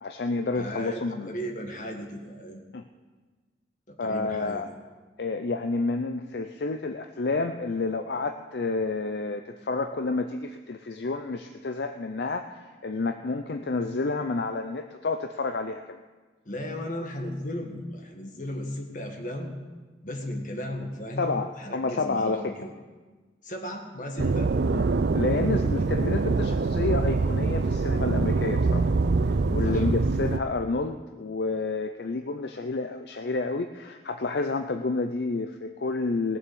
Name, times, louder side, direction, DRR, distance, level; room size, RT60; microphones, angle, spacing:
voice 1, 0.0-1.3 2.7-2.8 4.0-4.7 5.2-16.0 21.2-22.6 24.2-24.3 24.7-24.8 25.1-28.9 29.5-36.4, left 3 dB, 65° left, 7 dB, 0.5 m, -29 dB
voice 2, 0.6-2.6 3.9-4.8 16.5-19.5 20.0-22.7 23.4-24.5 29.6-29.9, equal, 45° left, 3 dB, 1.8 m, -36 dB
sound 1, 24.2-30.4, right 3 dB, 70° right, 0.5 m, -24 dB
18.5 x 7.2 x 6.9 m, 1.3 s
head